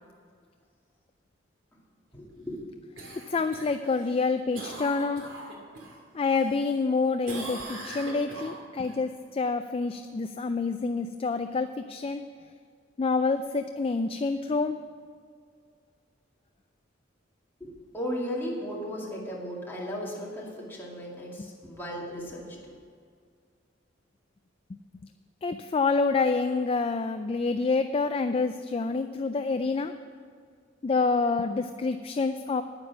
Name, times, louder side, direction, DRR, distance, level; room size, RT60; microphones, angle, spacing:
voice 1, 2.1-2.6 17.6-22.7, equal, 10° left, -5 dB, 2.4 m, -36 dB
Cough, 3.0-6.0 6.4-7.0 7.3-8.9 13.4-13.5, right 2 dB, 85° right, 2.5 m, -41 dB
voice 2, 3.3-5.2 6.1-12.2 13.0-14.8 25.4-29.9 30.8-32.6, left 4 dB, 30° left, 8 dB, 0.3 m, -27 dB
9.7 x 9.6 x 6.0 m, 2.1 s
head